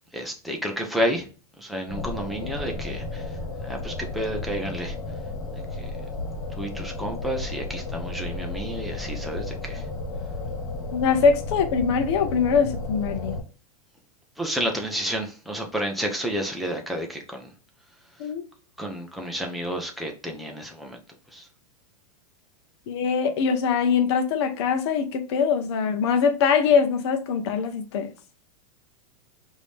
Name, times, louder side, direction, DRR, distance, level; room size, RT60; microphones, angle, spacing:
voice 1, 0.1-1.3 1.6-3.3 3.6-5.0 5.8-5.9 6.5-9.9 14.4-17.5 18.8-21.0 21.3-21.5, equal, ahead, 0.4 m, -30 dB
sound 1, 1.9-13.4, left 2 dB, 65° left, 1.2 m, -33 dB
voice 2, 10.9-13.4 18.2-18.4 22.9-28.1, left 6 dB, 50° left, 0.7 m, -22 dB
5.0 x 2.7 x 3.2 m
supercardioid pair, 170°, 19 cm